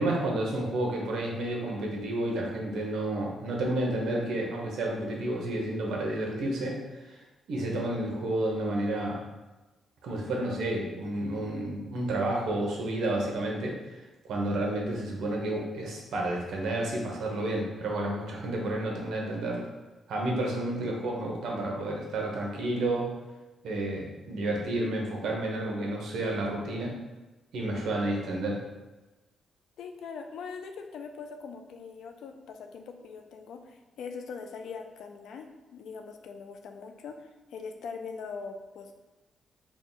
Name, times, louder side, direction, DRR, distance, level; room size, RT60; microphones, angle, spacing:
voice 1, 0.0-7.2 7.5-9.2 10.0-13.8 14.2-19.7 20.1-23.1 23.6-26.9 27.5-28.6, right 1 dB, 80° right, -1 dB, 0.9 m, -30 dB
voice 2, 29.8-39.0, left 5 dB, 80° left, 5 dB, 0.4 m, -42 dB
3.6 x 2.2 x 3.9 m, 1.1 s
cardioid pair, 125°, 0 cm